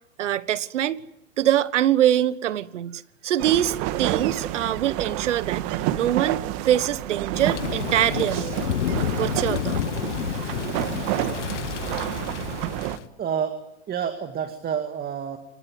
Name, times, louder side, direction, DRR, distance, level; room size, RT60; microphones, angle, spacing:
voice 1, 0.2-1.0 1.4-5.6 5.9-8.6 9.2-9.8, right 11 dB, 80° right, 1.2 m, -23 dB
sound 1, 3.4-13.0, right 14 dB, 45° right, 1.7 m, -29 dB
Thunder / Rain, 7.3-13.1, left 12 dB, 75° left, 1.3 m, -30 dB
voice 2, 13.2-15.4, right 8 dB, 25° right, 2.1 m, -29 dB
29.0 x 19.0 x 9.4 m
hypercardioid pair, 115°, 36 cm